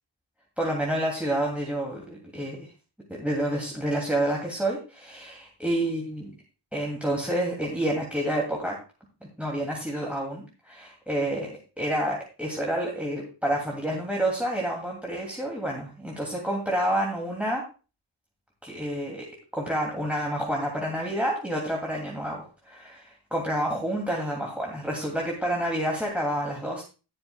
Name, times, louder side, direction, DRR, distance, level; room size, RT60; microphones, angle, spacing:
voice 1, 0.6-2.7 3.1-6.3 6.7-8.8 9.4-17.6 18.6-19.2 19.5-26.8, right 1 dB, 5° right, -1 dB, 2.8 m, -29 dB
19.0 x 6.9 x 2.4 m, 0.34 s
wide cardioid pair, 80°, 45 cm